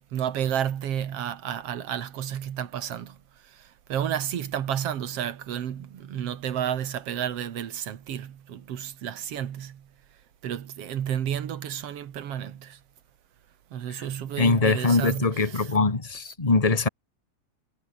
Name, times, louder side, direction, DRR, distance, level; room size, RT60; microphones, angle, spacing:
voice 1, 0.0-9.9 10.4-12.8 13.7-15.7, right 10 dB, 60° right, 2.4 m, -31 dB
voice 2, 14.4-16.9, left 3 dB, 15° left, 1.5 m, -22 dB
omnidirectional pair, 3.4 m